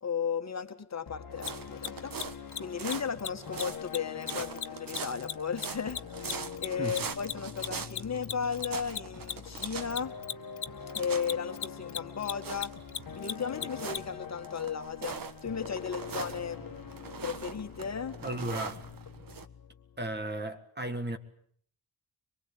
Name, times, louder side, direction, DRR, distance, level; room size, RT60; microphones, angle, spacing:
voice 1, 0.0-2.2 2.6-10.2 10.9-12.7 13.2-15.2 15.4-16.6 17.2-18.2, left 6 dB, 45° left, 1.9 m, -35 dB
sound 1, 1.1-20.2, left 8 dB, 60° left, 1.5 m, -45 dB
sound 2, 1.3-19.5, right 6 dB, 60° right, 1.5 m, -43 dB
Mechanisms, 1.4-1.5 1.8-1.9 2.1-2.2 2.5-2.6 2.8-2.9 3.2-3.3 3.5-3.6 3.9-6.7 6.9-14.0, left 9 dB, 85° left, 1.3 m, -35 dB
voice 2, 18.2-18.8 20.0-21.2, right 1 dB, 25° right, 1.8 m, -34 dB
24.0 x 23.5 x 8.6 m
wide cardioid pair, 150°, 38 cm